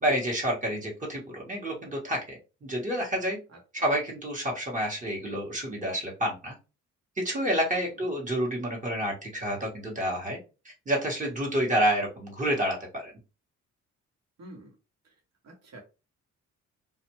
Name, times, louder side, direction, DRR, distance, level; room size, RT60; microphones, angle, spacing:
voice 1, 0.0-3.4 3.8-6.5 7.2-10.4 10.6-13.1, equal, 25° right, -2 dB, 1.1 m, -29 dB
voice 2, 3.5-3.9 14.4-14.7 15.0-15.1 15.4-15.8, right 1 dB, 60° right, 2 dB, 1.1 m, -48 dB
2.4 x 2.2 x 2.9 m, 0.30 s
cardioid pair, 90°, 30 cm